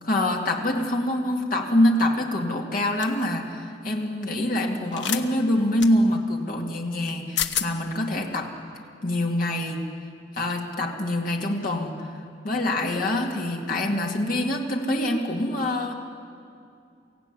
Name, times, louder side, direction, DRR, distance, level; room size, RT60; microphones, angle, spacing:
voice 1, 0.0-8.5 9.0-9.8 10.3-12.1 12.4-15.9, left 1 dB, 50° left, 1 dB, 2.4 m, -25 dB
sound 1, 3.0-3.2 4.9-5.2 5.8-5.9 7.1-7.2 7.4-7.7, left 9 dB, 80° left, 1.1 m, -27 dB
23.5 x 16.0 x 9.8 m, 2.5 s
head